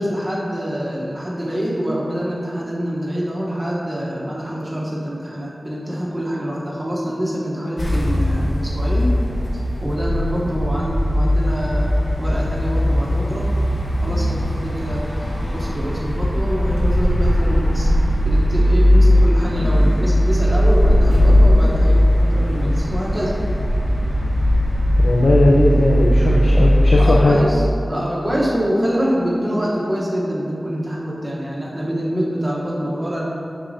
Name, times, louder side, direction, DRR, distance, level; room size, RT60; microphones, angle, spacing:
voice 1, 0.0-9.2 9.5-13.5 14.0-15.1 15.5-17.9 18.2-22.0 22.3-23.3 27.0-33.2, equal, 20° right, -6 dB, 1.0 m, -25 dB
sound 1, 7.8-27.2, equal, 70° left, 1.4 m, -18 dB
voice 2, 25.0-27.4, left 1 dB, 85° left, -4 dB, 0.5 m, -17 dB
6.3 x 6.2 x 2.7 m, 2.5 s
wide cardioid pair, 80°, 0 cm